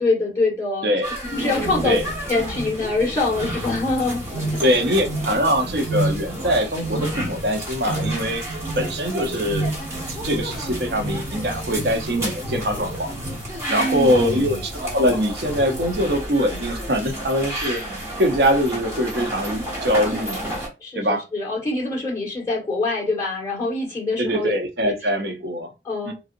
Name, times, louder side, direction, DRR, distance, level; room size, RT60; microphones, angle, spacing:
voice 1, 0.0-0.9 1.3-2.0 2.3-4.6 4.9-5.0 13.7-14.6 20.8-24.5 24.8-24.9 25.8-26.1, left 2 dB, 20° left, 1.7 m, -24 dB
sound 1, 1.0-20.7, right 1 dB, 15° right, 0.9 m, -29 dB
voice 2, 4.6-8.4 8.7-9.7 10.1-13.1 13.7-14.6 14.9-20.4 20.9-21.2 24.2-25.7 26.0-26.1, equal, 65° right, 0.7 m, -22 dB
3.8 x 2.0 x 2.6 m
head